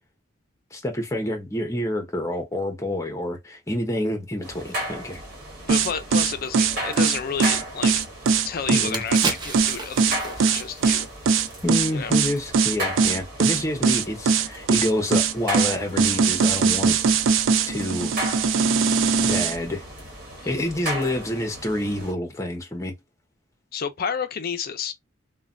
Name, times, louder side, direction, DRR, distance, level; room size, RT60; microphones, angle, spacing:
voice 1, 0.7-5.2 8.7-9.0 11.6-17.0 17.7-18.1 19.2-19.8 20.5-22.9, left 1 dB, 15° left, 0.7 m, -28 dB
sound 1, 4.4-22.1, right 1 dB, 50° right, 1.5 m, -36 dB
voice 2, 5.7-8.1 8.4-11.1 11.9-12.1 20.4-20.5 23.7-24.9, left 6 dB, 50° left, 0.5 m, -31 dB
sound 2, 5.7-19.6, right 5 dB, 75° right, 0.4 m, -20 dB
sound 3, 8.2-8.3 8.7-12.0 12.3-12.5, right 3 dB, 20° right, 0.5 m, -33 dB
3.1 x 2.2 x 2.5 m
head